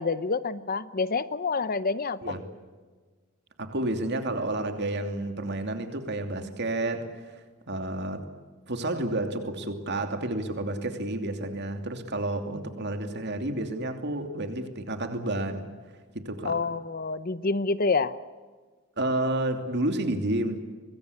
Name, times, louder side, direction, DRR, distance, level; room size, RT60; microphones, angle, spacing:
voice 1, 0.0-2.4 16.4-18.2, left 4 dB, 45° left, 0.8 m, -27 dB
voice 2, 3.6-8.3 8.7-15.7 16.1-16.6 19.0-20.6, right 1 dB, 55° right, 2.8 m, -30 dB
23.5 x 23.0 x 8.5 m
head